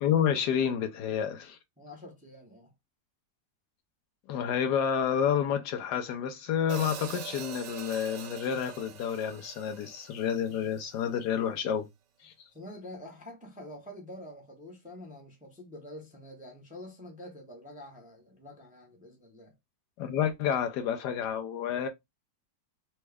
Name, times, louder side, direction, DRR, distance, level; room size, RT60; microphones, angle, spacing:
voice 1, 0.0-1.6 4.3-11.9 12.2-12.5 20.0-21.9, left 8 dB, 75° left, 1.1 m, -29 dB
voice 2, 1.8-2.7 12.5-19.5, left 1 dB, 5° right, 0.7 m, -46 dB
Hi-hat, 6.7-10.9, right 8 dB, 80° right, 0.6 m, -43 dB
4.2 x 2.3 x 3.3 m
omnidirectional pair, 2.0 m